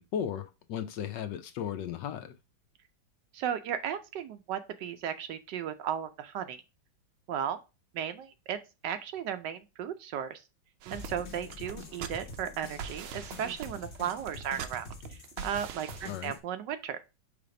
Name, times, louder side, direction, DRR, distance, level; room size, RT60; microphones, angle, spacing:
voice 1, 0.0-2.3 16.1-16.4, left 9 dB, 70° left, 1.2 m, -36 dB
voice 2, 3.3-6.6 7.3-7.6 7.9-8.6 8.8-10.4 10.9-17.0, right 9 dB, 75° right, 1.1 m, -35 dB
sound 1, 10.8-16.1, right 8 dB, 90° right, 1.5 m, -43 dB
sound 2, 10.9-16.4, left 3 dB, 40° left, 0.9 m, -46 dB
5.7 x 3.4 x 5.1 m
omnidirectional pair, 2.2 m